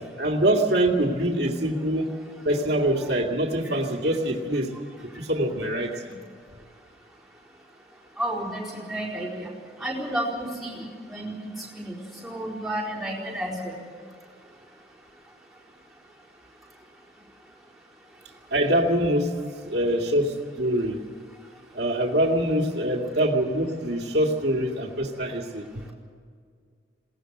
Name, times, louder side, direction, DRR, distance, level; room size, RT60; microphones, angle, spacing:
voice 1, 0.2-2.2 2.4-4.7 5.2-6.2 18.5-19.3 19.6-21.0 21.7-25.9, right 1 dB, 60° right, 0 dB, 2.3 m, -24 dB
voice 2, 8.2-9.5 9.8-12.0 12.2-13.6, right 1 dB, ahead, -6 dB, 4.4 m, -31 dB
21.5 x 18.0 x 7.9 m, 2.1 s
head